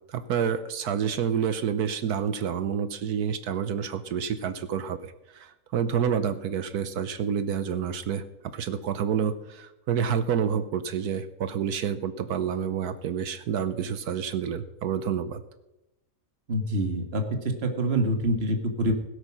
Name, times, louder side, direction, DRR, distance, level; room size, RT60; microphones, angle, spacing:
voice 1, 0.1-15.4, right 7 dB, 65° right, 12 dB, 1.2 m, -28 dB
voice 2, 16.5-18.9, right 1 dB, 35° right, 5 dB, 1.8 m, -26 dB
16.5 x 8.2 x 6.1 m, 0.96 s
omnidirectional pair, 1.8 m